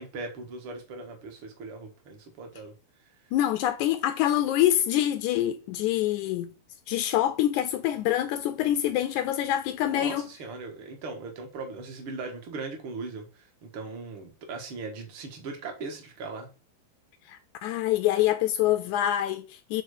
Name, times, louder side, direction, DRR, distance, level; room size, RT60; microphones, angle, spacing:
voice 1, 0.0-2.7 9.9-16.5, right 3 dB, 50° right, 2.0 m, -39 dB
voice 2, 3.3-6.5 6.9-10.3 17.3-19.8, left 12 dB, 80° left, 1.8 m, -25 dB
6.7 x 4.0 x 6.3 m
omnidirectional pair, 3.7 m